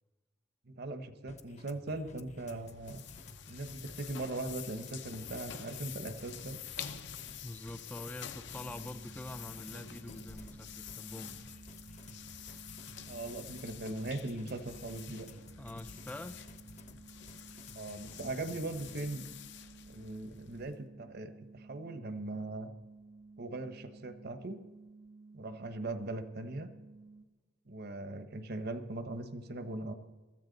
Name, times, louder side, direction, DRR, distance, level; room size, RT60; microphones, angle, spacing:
voice 1, 0.7-3.0 3.5-6.6 13.1-15.3 17.7-19.2 19.9-22.7 23.4-24.6 25.3-26.7 27.7-29.9, right 2 dB, 55° right, 10 dB, 1.0 m, -40 dB
sound 1, 1.3-19.1, left 2 dB, 35° left, 0.9 m, -54 dB
sound 2, 2.4-20.9, left 9 dB, 65° left, 0.8 m, -48 dB
voice 2, 7.4-11.5 15.6-16.4, left 1 dB, 10° left, 9 dB, 0.4 m, -45 dB
sound 3, 8.5-27.2, right 3 dB, 85° right, 1.2 m, -55 dB
22.5 x 13.5 x 4.0 m, 1.2 s
head